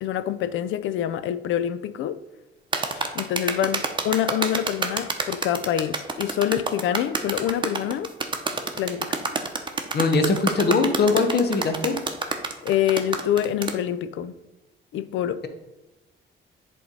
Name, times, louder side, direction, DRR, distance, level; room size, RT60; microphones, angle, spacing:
voice 1, 0.0-2.2 2.9-8.1 8.8-9.2 12.6-14.3 14.9-15.4, left 10 dB, 75° left, 0.5 m, -26 dB
sound 1, 2.7-13.8, right 3 dB, 25° right, 0.8 m, -28 dB
voice 2, 9.9-12.0, left 4 dB, 55° left, 1.1 m, -21 dB
7.7 x 3.5 x 5.4 m
cardioid pair, 90°, 20 cm